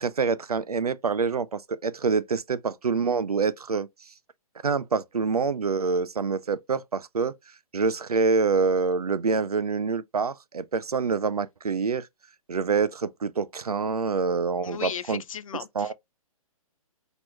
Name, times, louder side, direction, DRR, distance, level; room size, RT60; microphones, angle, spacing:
voice 1, 0.0-3.9 4.6-7.3 7.7-12.1 12.5-15.2 15.8-15.9, right 5 dB, 85° right, 0.4 m, -26 dB
voice 2, 14.6-15.9, left 8 dB, 65° left, 0.5 m, -35 dB
4.5 x 3.0 x 2.2 m
figure-of-eight pair, 130°, 19 cm